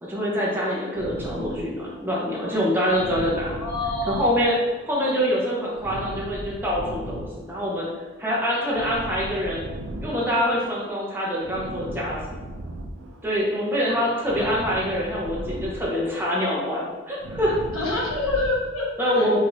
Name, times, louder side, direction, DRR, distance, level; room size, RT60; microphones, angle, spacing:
voice 1, 0.0-3.6 4.1-4.5 4.8-7.9 8.2-9.7 10.0-12.4 13.2-17.6 19.0-19.4, equal, 10° right, -5 dB, 0.8 m, -25 dB
sound 1, 0.9-13.6 13.8-18.5, right 1 dB, 70° right, 0.5 m, -38 dB
voice 2, 3.4-4.4 17.7-19.4, left 2 dB, 90° left, -4 dB, 1.3 m, -27 dB
4.9 x 3.5 x 2.7 m, 1.2 s
head